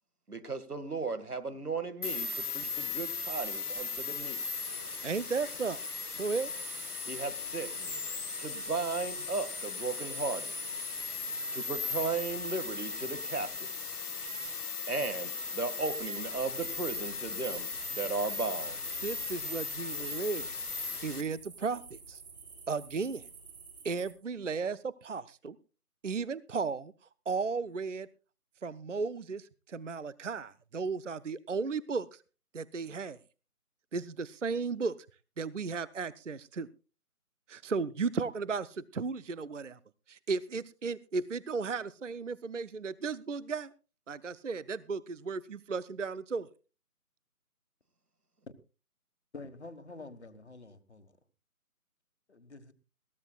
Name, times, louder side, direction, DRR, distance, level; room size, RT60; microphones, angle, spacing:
voice 1, 0.3-4.4 7.1-8.1 8.4-10.6 11.5-13.9 14.9-18.8, right 4 dB, 80° right, 1.9 m, -36 dB
sound 1, 2.0-21.2, left 4 dB, 80° left, 1.1 m, -37 dB
voice 2, 5.0-5.8 6.2-6.5 19.0-20.5 21.0-22.2 22.7-23.2 23.8-25.6 26.0-26.9 27.3-28.1 28.6-32.2 32.5-33.2 33.9-35.1 35.4-36.7 37.5-39.8 40.1-43.7 44.1-46.5, right 4 dB, 55° right, 0.6 m, -35 dB
sound 2, 16.4-24.1, right 5 dB, 30° right, 4.7 m, -50 dB
voice 3, 49.3-51.2 52.3-52.7, left 3 dB, 45° left, 1.5 m, -48 dB
21.0 x 15.5 x 2.3 m
figure-of-eight pair, 160°, 45 cm